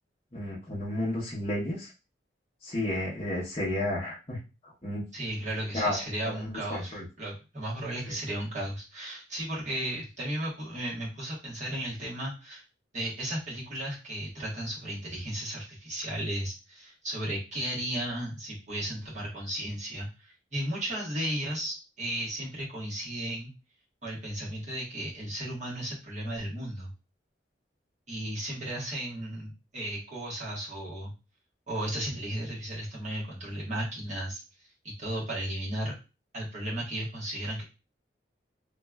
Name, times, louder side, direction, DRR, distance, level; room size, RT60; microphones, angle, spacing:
voice 1, 0.3-1.9 2.6-5.0 5.7-6.4 6.7-7.0 8.1-8.2, left 1 dB, 35° left, -6 dB, 0.8 m, -32 dB
voice 2, 5.1-12.6 12.9-23.5 24.0-26.9 28.1-31.1 31.7-34.4 34.8-36.0 36.3-37.6, right 1 dB, 40° right, -6 dB, 1.3 m, -35 dB
3.1 x 2.4 x 2.2 m, 0.29 s
head